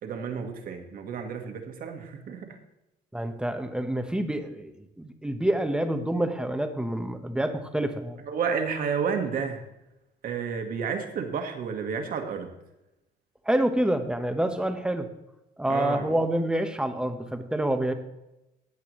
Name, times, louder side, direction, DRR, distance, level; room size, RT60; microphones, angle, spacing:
voice 1, 0.0-2.6 8.3-9.6 10.2-12.5 15.7-16.1, right 6 dB, 60° right, 5 dB, 1.6 m, -31 dB
voice 2, 3.1-8.2 13.5-15.1 15.6-17.9, right 1 dB, 5° right, 7 dB, 1.0 m, -27 dB
15.5 x 8.2 x 3.1 m, 0.94 s
cardioid pair, 110°, 17 cm